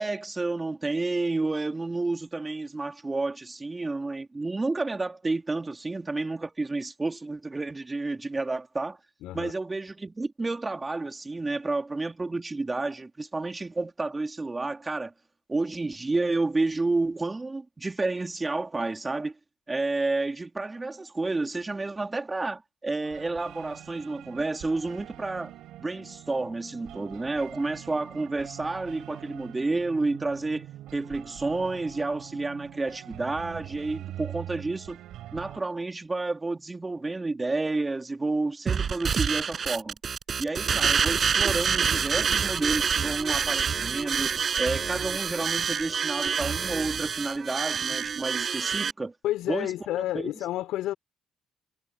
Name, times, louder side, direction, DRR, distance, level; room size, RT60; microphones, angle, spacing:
voice 1, 0.0-9.0 9.3-15.1 15.5-19.3 19.7-30.7 30.9-35.0 35.3-39.9 40.4-49.1 49.5-50.3, right 3 dB, 25° right, 3.5 m, -30 dB
voice 2, 9.2-9.5 49.2-50.9, left 14 dB, 80° left, 5.3 m, -30 dB
sound 1, 23.0-35.6, right 13 dB, 75° right, 4.6 m, -44 dB
sound 2, 38.7-48.9, right 6 dB, 55° right, 7.1 m, -27 dB
hypercardioid pair, 50°, 0 cm